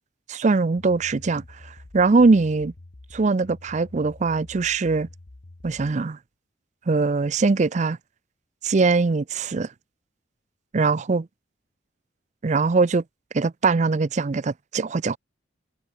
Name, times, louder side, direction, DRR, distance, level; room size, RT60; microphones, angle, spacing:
voice 1, 0.3-1.4 1.9-2.7 3.1-5.1 5.6-6.2 6.9-8.0 8.6-9.7 10.7-11.3 12.4-13.0 13.3-15.2, right 4 dB, 35° right, 0.4 m, -21 dB
sound 1, 0.8-6.0, left 2 dB, 50° left, 1.0 m, -47 dB
head